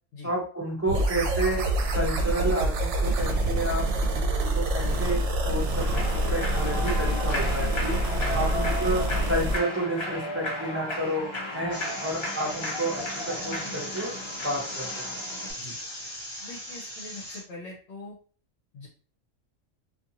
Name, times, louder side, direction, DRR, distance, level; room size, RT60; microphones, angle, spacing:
voice 1, 0.2-1.6 1.9-5.2 5.4-7.9 8.3-11.3 11.5-14.1 14.4-14.9, right 1 dB, 15° right, -3 dB, 0.6 m, -30 dB
sound 1, 0.9-9.6, right 1 dB, 65° right, 0.9 m, -26 dB
Human voice / Clapping / Cheering, 5.8-15.5, left 1 dB, 35° left, 0.4 m, -34 dB
sound 2, 11.7-17.4, left 1 dB, 15° left, 1.1 m, -38 dB
voice 2, 16.4-18.2 18.7-18.9, left 2 dB, 65° left, -2 dB, 0.9 m, -42 dB
2.5 x 2.4 x 2.7 m, 0.40 s
omnidirectional pair, 1.4 m